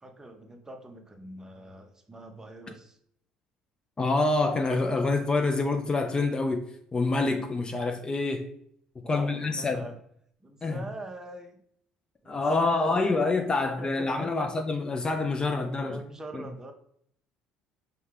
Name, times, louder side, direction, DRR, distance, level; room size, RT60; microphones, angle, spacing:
voice 1, 0.0-3.0 9.0-10.0 10.4-11.6 12.2-13.3 13.6-14.5 15.7-16.7, right 1 dB, 15° right, 0.6 m, -43 dB
voice 2, 4.0-8.5 9.1-9.8 10.6-10.8 12.3-16.0 16.3-16.4, left 3 dB, 25° left, 0.4 m, -27 dB
5.4 x 2.2 x 3.3 m
figure-of-eight pair, 55°, 4 cm